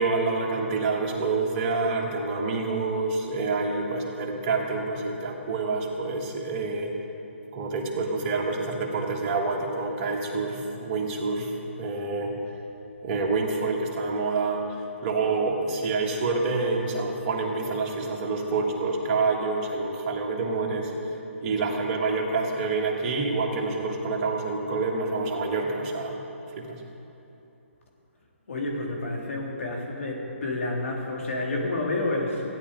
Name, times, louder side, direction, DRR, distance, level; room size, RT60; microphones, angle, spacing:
voice 1, 0.0-6.9 7.5-12.3 13.0-20.9 21.4-26.2 26.6-26.8, right 3 dB, 30° right, -1 dB, 1.5 m, -27 dB
voice 2, 28.5-32.4, left 2 dB, 70° left, -1 dB, 2.4 m, -29 dB
16.0 x 10.0 x 3.8 m, 2.9 s
hypercardioid pair, 150°, 7 cm